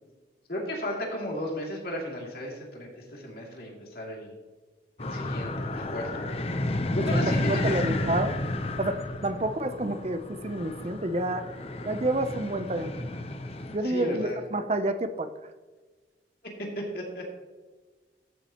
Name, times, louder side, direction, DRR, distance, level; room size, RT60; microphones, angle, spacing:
voice 1, 0.5-4.3 5.0-6.2 6.9-8.0 13.8-14.4 16.6-17.3, equal, 55° left, -1 dB, 2.6 m, -34 dB
sound 1, 5.0-13.8, left 1 dB, 35° left, 0.7 m, -31 dB
voice 2, 7.3-8.3 8.8-11.5 11.8-12.9 13.7-15.3, right 1 dB, 35° right, 10 dB, 0.6 m, -29 dB
14.0 x 7.4 x 3.0 m, 1.3 s
head